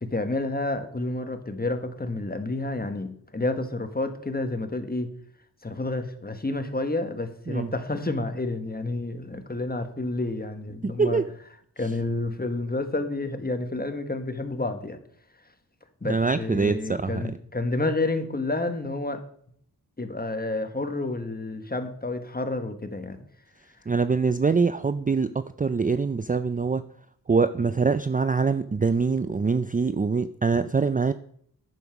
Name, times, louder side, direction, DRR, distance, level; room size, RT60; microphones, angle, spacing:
voice 1, 0.0-5.1 5.6-11.2 11.8-15.0 16.0-19.2 20.0-23.2, left 2 dB, 25° left, 8 dB, 1.4 m, -29 dB
voice 2, 10.8-11.3 16.0-17.2 23.9-26.8 27.3-31.1, right 4 dB, 20° right, 12 dB, 0.4 m, -24 dB
11.0 x 7.2 x 5.9 m, 0.63 s
wide cardioid pair, 95°, 39 cm